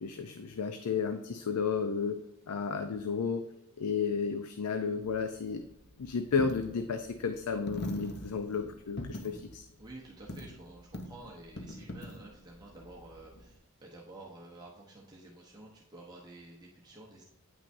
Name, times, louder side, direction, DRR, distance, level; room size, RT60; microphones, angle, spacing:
voice 1, 0.0-2.2 2.5-3.4 3.8-5.6 6.0-9.7, left 5 dB, 90° left, 8 dB, 0.5 m, -32 dB
Coin (dropping), 5.0-13.6, left 1 dB, 45° left, 0.7 m, -44 dB
voice 2, 9.8-17.2, right 2 dB, 20° right, -4 dB, 0.9 m, -50 dB
9.3 x 5.9 x 2.6 m, 0.92 s
head